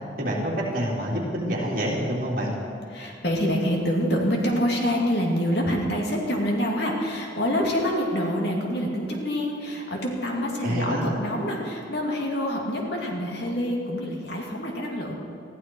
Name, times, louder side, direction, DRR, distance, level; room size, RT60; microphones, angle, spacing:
voice 1, 0.2-2.5 10.6-11.2, equal, 50° right, -4 dB, 3.4 m, -27 dB
voice 2, 2.9-15.2, equal, 60° left, -1 dB, 2.7 m, -26 dB
20.5 x 14.5 x 4.7 m, 2.5 s
head